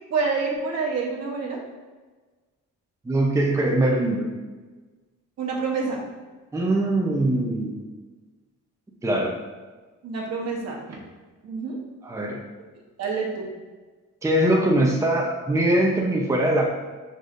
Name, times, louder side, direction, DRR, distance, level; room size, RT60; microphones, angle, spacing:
voice 1, 0.1-1.6 5.4-6.1 10.0-11.0 11.4-11.8 13.0-13.5, right 4 dB, 60° right, -1 dB, 1.1 m, -27 dB
voice 2, 3.0-4.3 6.5-7.8 9.0-9.4 12.0-12.4 14.2-16.7, right 1 dB, 10° right, -1 dB, 0.6 m, -22 dB
4.9 x 3.9 x 2.5 m, 1.3 s
cardioid pair, 90°, 30 cm